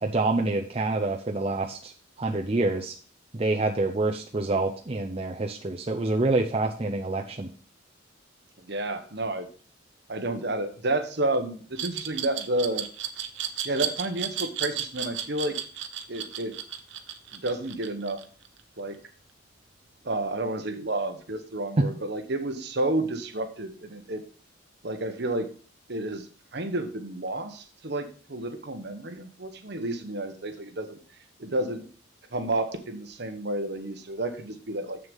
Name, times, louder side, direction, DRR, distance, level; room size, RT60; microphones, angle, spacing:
voice 1, 0.0-1.9 2.2-2.9 3.3-7.5 21.8-21.9, right 2 dB, 30° right, 2 dB, 0.6 m, -26 dB
voice 2, 8.7-9.5 10.1-12.9 13.6-15.6 16.1-16.5 17.3-18.2 18.8-19.0 20.0-24.2 24.8-25.5 25.9-26.3 26.5-31.0 31.4-31.8 32.3-35.0, right 2 dB, 60° right, 7 dB, 1.1 m, -30 dB
Glass, 11.8-18.6, right 10 dB, 75° right, 0.9 m, -33 dB
7.3 x 6.7 x 5.4 m, 0.41 s
head